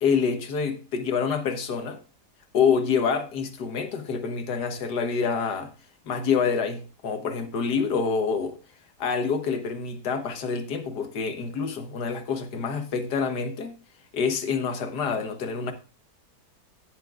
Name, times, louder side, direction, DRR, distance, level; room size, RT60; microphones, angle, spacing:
voice 1, 0.0-2.0 2.5-5.7 6.1-8.6 9.0-13.8 14.1-15.7, left 6 dB, 75° left, 1.7 m, -27 dB
17.0 x 6.6 x 2.4 m
omnidirectional pair, 1.8 m